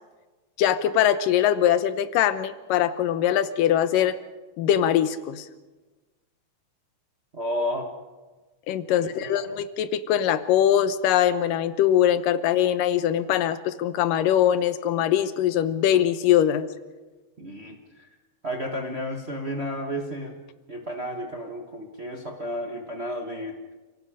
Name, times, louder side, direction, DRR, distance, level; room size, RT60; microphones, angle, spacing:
voice 1, 0.6-4.2 4.6-5.5 8.7-16.7, left 10 dB, 85° left, 12 dB, 2.6 m, -22 dB
voice 2, 7.3-7.9 8.9-9.5 17.4-18.1 18.4-20.3 20.7-23.6, equal, 65° right, 2 dB, 0.6 m, -32 dB
30.0 x 17.5 x 5.0 m, 1.2 s
omnidirectional pair, 3.8 m